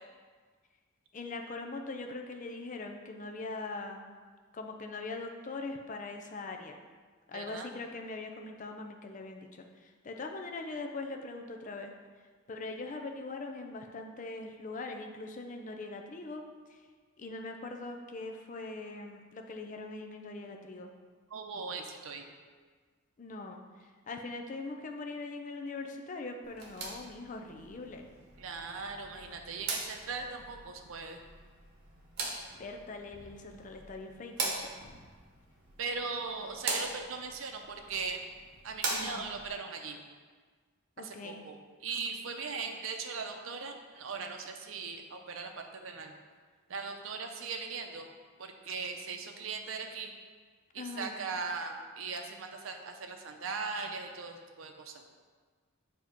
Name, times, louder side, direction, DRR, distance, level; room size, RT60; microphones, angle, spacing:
voice 1, 1.1-4.1 4.5-6.8 7.3-11.9 12.5-16.8 17.2-20.9 23.2-28.1 32.6-34.7 38.9-39.3 41.0-41.4 50.8-51.2, left 3 dB, 40° left, 3 dB, 0.5 m, -41 dB
voice 2, 7.3-7.7 21.3-22.2 28.4-31.2 35.8-38.2 38.6-40.0 41.0-41.6 41.8-46.1 46.7-48.1 48.4-50.1 50.7-55.0, right 4 dB, 75° right, 4 dB, 0.6 m, -39 dB
sound 1, 26.4-39.5, right 3 dB, 55° right, 1.0 m, -41 dB
7.1 x 2.9 x 5.1 m, 1.5 s
head